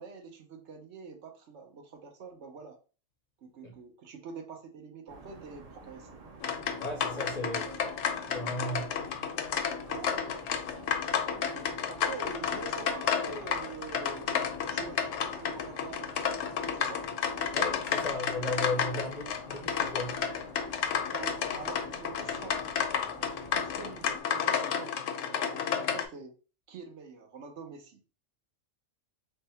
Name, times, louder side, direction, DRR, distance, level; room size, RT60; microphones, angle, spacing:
voice 1, 0.0-2.8 3.4-6.2 7.4-8.0 9.9-10.4 10.7-16.4 16.7-17.0 21.1-22.6 23.0-23.1 23.5-26.3 26.7-28.0, right 4 dB, 65° right, 1.0 m, -46 dB
sound 1, 5.1-24.2, right 4 dB, 45° right, 0.5 m, -50 dB
sound 2, 6.4-26.0, left 7 dB, 80° left, 0.9 m, -32 dB
voice 2, 6.8-7.6 8.3-9.0 17.5-20.2, left 1 dB, 45° left, 0.6 m, -35 dB
3.4 x 2.2 x 4.1 m
omnidirectional pair, 1.3 m